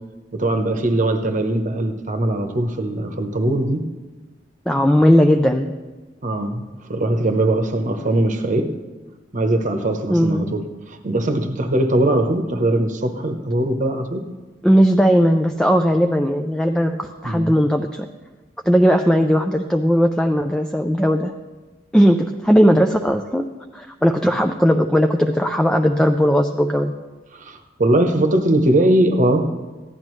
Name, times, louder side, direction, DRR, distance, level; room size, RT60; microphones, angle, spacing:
voice 1, 0.3-3.8 6.2-8.7 9.3-10.6 10.9-14.2 17.2-17.5 27.3-29.4, right 1 dB, 45° right, 6 dB, 0.9 m, -20 dB
voice 2, 4.7-5.7 10.1-10.5 14.6-18.1 18.6-21.3 21.9-23.5 23.7-26.9, equal, 5° left, 5 dB, 0.4 m, -17 dB
15.5 x 10.5 x 3.2 m, 1.2 s
head